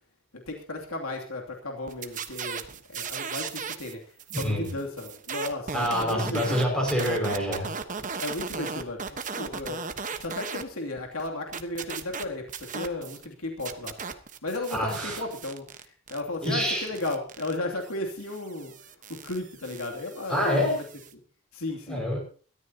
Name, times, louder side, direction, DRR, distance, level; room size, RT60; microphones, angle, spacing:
voice 1, 0.5-6.7 8.2-9.9 10.2-13.9 14.4-18.7 19.1-20.8 21.5-22.0, left 2 dB, 85° left, 1 dB, 2.8 m, -34 dB
sound 1, 1.9-10.6 11.0-13.3 13.6-21.1, right 6 dB, 35° right, 1.2 m, -37 dB
voice 2, 4.3-4.8 5.7-7.7 14.7-15.2 16.4-16.8 20.3-20.8 21.9-22.2, equal, 5° left, 0 dB, 5.8 m, -26 dB
22.5 x 14.0 x 2.9 m, 0.40 s
head